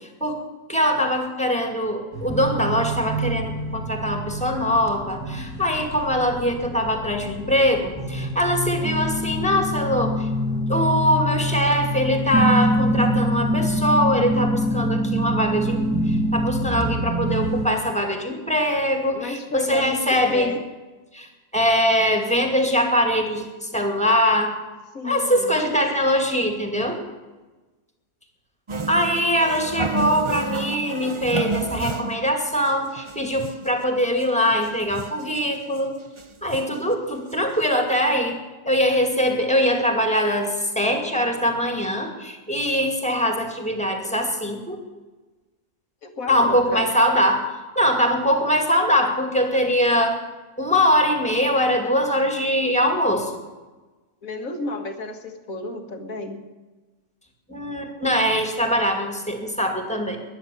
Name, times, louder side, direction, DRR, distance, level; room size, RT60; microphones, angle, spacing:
voice 1, 0.7-10.3 10.7-20.5 21.1-21.3 21.5-24.5 25.0-27.0 28.9-35.9 36.4-38.4 38.7-44.8 46.3-47.4 47.8-50.2 50.6-53.3 57.5-60.2, equal, 5° left, 4 dB, 2.3 m, -22 dB
sound 1, 2.1-17.7, equal, 15° right, 2.1 m, -25 dB
voice 2, 19.1-20.6 24.9-25.6 46.0-46.9 54.2-56.4, left 2 dB, 60° left, 6 dB, 2.1 m, -32 dB
sound 2, 28.7-32.3 32.7-32.8 33.0-33.7 34.2-34.3 34.5-35.3 35.8-35.9 36.2-36.8 37.3-37.4 37.6-37.7, right 4 dB, 40° right, 0.4 m, -30 dB
14.0 x 10.0 x 9.9 m, 1.2 s
omnidirectional pair, 1.6 m